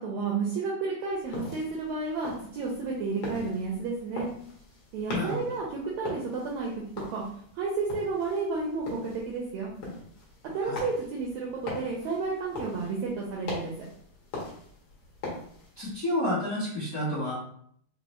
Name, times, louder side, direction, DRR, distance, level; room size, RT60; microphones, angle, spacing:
voice 1, 0.0-4.3 4.9-6.7 7.1-7.2 7.5-9.7 10.4-13.8, right 4 dB, 85° right, -2 dB, 1.6 m, -31 dB
sound 1, 1.1-16.0, left 2 dB, 65° left, 1.4 m, -42 dB
voice 2, 5.1-5.5 10.6-10.8 15.8-17.3, left 1 dB, 85° left, -11 dB, 0.7 m, -30 dB
5.0 x 2.0 x 3.0 m, 0.64 s
omnidirectional pair, 3.7 m